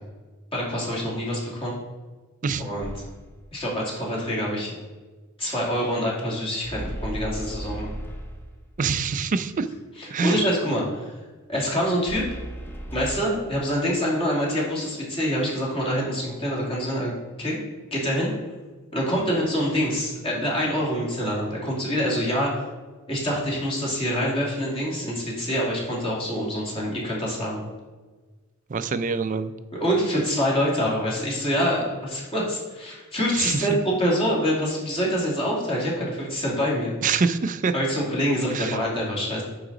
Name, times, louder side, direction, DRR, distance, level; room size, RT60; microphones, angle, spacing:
voice 1, 0.5-1.8 2.6-2.9 3.5-4.7 5.4-7.9 10.0-11.1 11.5-12.2 12.9-17.1 17.4-17.6 17.9-18.3 18.9-22.6 23.1-27.6 29.7-33.7 34.0-36.9 37.7-39.4, equal, 25° left, -4 dB, 2.1 m, -26 dB
sound 1, 2.8-3.4 6.6-8.7 12.1-13.2, right 1 dB, 10° left, 0.8 m, -35 dB
voice 2, 8.8-9.7 10.1-10.4 28.7-29.5 33.3-33.8 37.0-37.7 38.5-38.8, right 5 dB, 35° right, 12 dB, 0.4 m, -25 dB
9.7 x 4.0 x 3.9 m, 1.3 s
head